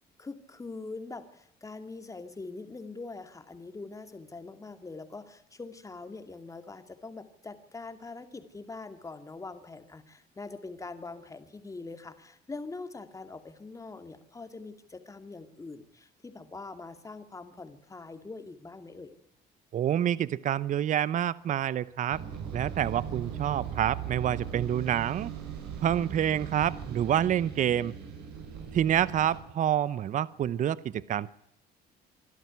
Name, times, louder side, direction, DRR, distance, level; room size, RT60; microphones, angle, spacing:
voice 1, 0.2-19.1, left 3 dB, 20° left, 8 dB, 2.5 m, -43 dB
voice 2, 19.7-22.2 22.5-25.3 25.8-27.9 28.7-31.3, right 10 dB, 50° right, 19 dB, 0.8 m, -27 dB
sound 1, 22.1-29.4, right 8 dB, 90° right, 7.1 m, -39 dB
25.0 x 12.5 x 9.5 m, 0.81 s
cardioid pair, 110°, 17 cm